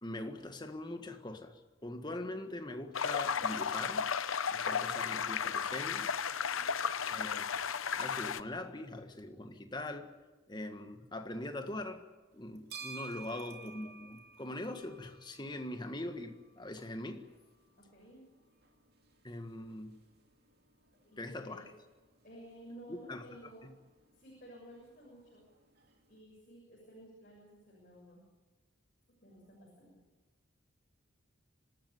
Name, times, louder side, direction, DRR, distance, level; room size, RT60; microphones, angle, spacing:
voice 1, 0.0-4.1 4.5-6.1 7.1-10.1 10.5-12.1 12.3-17.3 19.2-20.0 21.2-21.6 22.9-23.3 23.6-23.7, left 1 dB, 20° left, 6 dB, 1.6 m, -42 dB
sound 1, 2.9-8.4, left 6 dB, 90° left, 0.8 m, -34 dB
voice 2, 6.4-6.7 13.1-13.6 17.8-18.3 21.0-21.7 22.2-23.7 24.1-25.4 26.1-28.3 29.2-29.9, right 1 dB, 45° left, -3 dB, 7.0 m, -54 dB
sound 2, 12.3-26.2, right 5 dB, 50° right, 2.7 m, -55 dB
26.0 x 13.0 x 9.6 m, 1.3 s
head